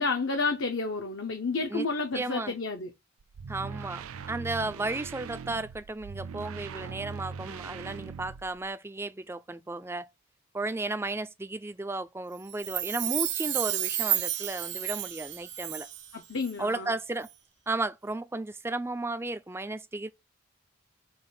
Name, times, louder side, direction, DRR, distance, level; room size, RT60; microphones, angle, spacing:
voice 1, 0.0-2.9 16.1-16.9, left 3 dB, 65° left, 0.9 m, -30 dB
voice 2, 2.1-2.5 3.5-10.1 10.5-15.9 16.6-17.3 17.7-20.1, right 2 dB, 10° right, 0.4 m, -34 dB
sound 1, 3.2-8.7, right 6 dB, 90° right, 0.4 m, -40 dB
Chime, 12.5-16.1 16.4-16.5, right 12 dB, 55° right, 0.7 m, -31 dB
6.8 x 2.5 x 5.4 m
head